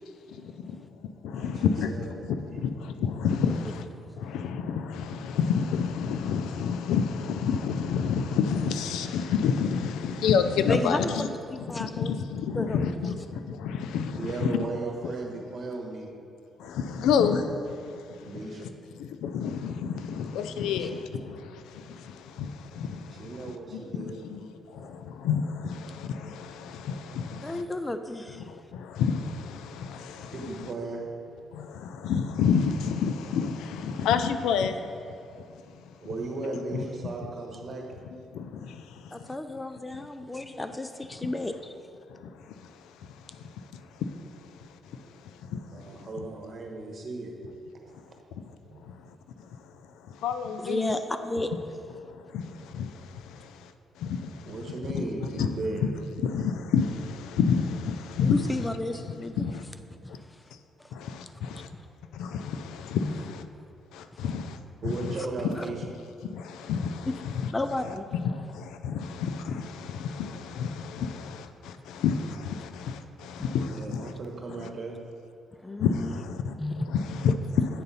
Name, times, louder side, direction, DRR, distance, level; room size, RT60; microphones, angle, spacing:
voice 1, 1.3-1.9 2.3-2.7 3.0-3.8 4.2-11.3 11.8-13.2 13.6-14.6 16.6-17.4 19.2-21.2 22.4-22.5 22.8-22.9 24.0-24.4 25.2-27.6 29.0-30.5 31.6-34.7 36.7-36.9 38.3-38.5 50.2-51.0 52.7-52.9 54.0-54.1 54.9-55.0 55.4-55.9 56.2-58.5 59.4-59.6 61.4-61.6 62.2-63.4 64.2-64.4 64.8-65.2 66.3-67.5 68.1-68.3 68.8-71.4 71.9-74.0 74.6-74.7 75.8-76.5 76.9-77.8, left 6 dB, 90° left, 9 dB, 0.4 m, -28 dB
voice 2, 10.7-12.1 12.6-12.8 20.8-20.9 24.8-24.9 27.4-28.5 39.1-41.7 50.6-51.5 58.2-59.5 60.0-60.5 60.8-60.9 63.0-63.1 64.1-64.2 65.5-65.7 67.5-68.0 75.6-76.2 76.6-76.8, left 2 dB, 15° left, 9 dB, 0.3 m, -33 dB
voice 3, 14.2-16.1 18.2-18.7 23.1-24.2 24.8-25.0 30.3-31.2 36.0-37.8 40.2-40.4 45.0-45.1 45.7-47.3 47.7-47.9 48.7-48.8 54.5-55.8 64.8-65.8 73.7-74.9, right 3 dB, 50° right, 1 dB, 1.2 m, -36 dB
8.3 x 3.9 x 5.5 m, 2.5 s
cardioid pair, 90°, 0 cm